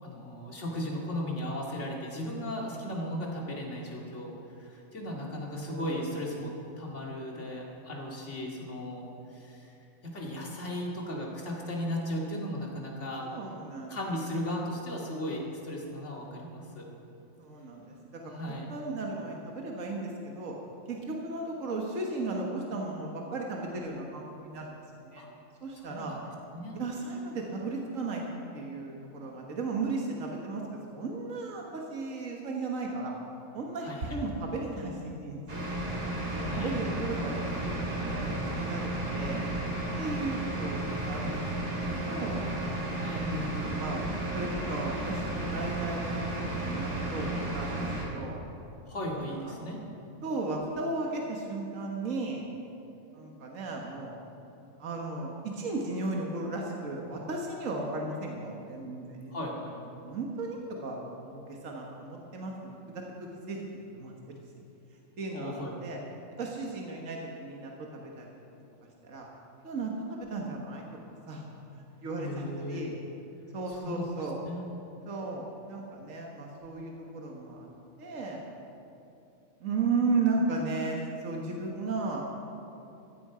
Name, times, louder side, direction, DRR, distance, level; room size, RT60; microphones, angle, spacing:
voice 1, 0.0-4.3 4.6-9.0 9.3-9.7 10.0-13.3 13.9-16.9 18.2-18.7 25.2-25.3 25.7-26.2 26.5-26.8 33.8-34.1 36.5-36.7 42.9-43.6 48.9-49.8 59.3-59.8 65.3-65.7 72.2-72.9 73.7-74.7, left 1 dB, 55° left, -2 dB, 2.6 m, -36 dB
voice 2, 5.5-5.9 13.3-14.0 17.4-18.2 18.7-20.5 20.9-25.2 25.6-26.1 26.7-28.2 28.5-33.1 33.5-35.6 36.3-39.4 40.0-40.8 41.1-41.5 41.8-42.4 43.0-44.0 44.3-48.4 49.3-49.5 50.2-52.4 53.1-54.1 54.8-59.3 60.0-63.7 63.9-64.3 65.2-66.0 66.4-68.3 69.0-69.3 69.6-70.8 71.3-71.5 72.0-72.9 73.5-74.4 75.1-77.7 78.0-78.4 79.6-82.2, right 3 dB, 70° right, 0 dB, 1.8 m, -35 dB
sound 1, 35.5-48.0, right 1 dB, 55° right, 3.3 m, -33 dB
15.0 x 14.0 x 5.0 m, 2.8 s
omnidirectional pair, 1.4 m